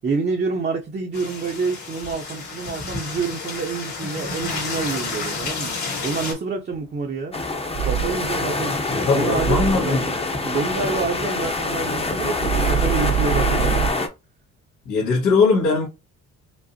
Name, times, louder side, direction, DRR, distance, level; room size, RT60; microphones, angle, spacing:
voice 1, 0.0-7.4 7.8-8.8 9.1-13.8, right 4 dB, 35° right, 0.7 m, -28 dB
sound 1, 1.1-6.3, left 4 dB, 70° left, 1.9 m, -30 dB
sound 2, 6.7-6.8 7.7-8.4 9.3-10.0 12.4-13.9, right 9 dB, 70° right, 0.5 m, -24 dB
sound 3, 7.3-14.1, left 3 dB, 20° left, 0.8 m, -25 dB
voice 2, 8.9-10.0 14.9-15.9, left 4 dB, 90° left, 1.9 m, -20 dB
5.1 x 2.0 x 2.8 m
cardioid pair, 90°, 30 cm